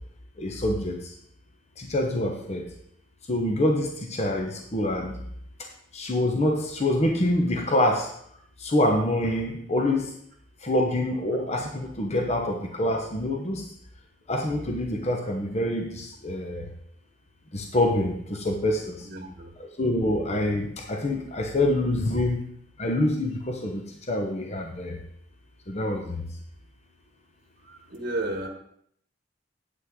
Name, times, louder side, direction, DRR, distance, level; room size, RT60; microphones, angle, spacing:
voice 1, 0.4-1.1 1.8-2.7 3.3-5.2 5.9-8.1 8.6-10.1 10.6-13.6 14.3-16.7 17.5-19.1 19.8-22.4 22.8-25.0 25.7-26.2, left 1 dB, 35° left, 2 dB, 0.9 m, -26 dB
voice 2, 19.0-19.5 22.1-22.2 27.6-28.5, right 2 dB, 55° right, 4 dB, 1.1 m, -33 dB
8.7 x 8.1 x 3.7 m, 0.68 s
head